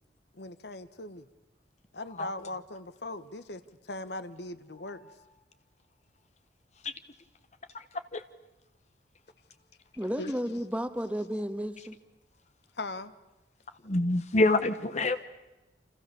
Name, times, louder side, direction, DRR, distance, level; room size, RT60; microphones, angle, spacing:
voice 1, 0.3-1.3 1.9-5.1 10.2-10.3 12.8-13.1, left 2 dB, 65° left, 1.3 m, -39 dB
voice 2, 10.0-12.0, equal, 5° right, 1.4 m, -32 dB
voice 3, 13.8-15.2, left 2 dB, 40° left, 1.0 m, -26 dB
29.0 x 27.0 x 7.0 m
head